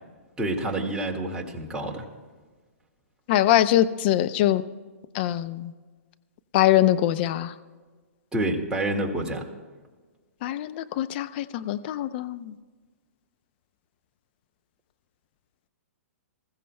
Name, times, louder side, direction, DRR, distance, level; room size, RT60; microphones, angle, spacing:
voice 1, 0.4-2.0 8.3-9.5, right 1 dB, 10° right, -1 dB, 1.9 m, -28 dB
voice 2, 3.3-4.6 5.1-5.7 6.5-7.5 10.4-12.5, left 13 dB, 45° left, 12 dB, 0.6 m, -23 dB
25.5 x 15.0 x 2.2 m, 1.4 s
hypercardioid pair, 125°, 8 cm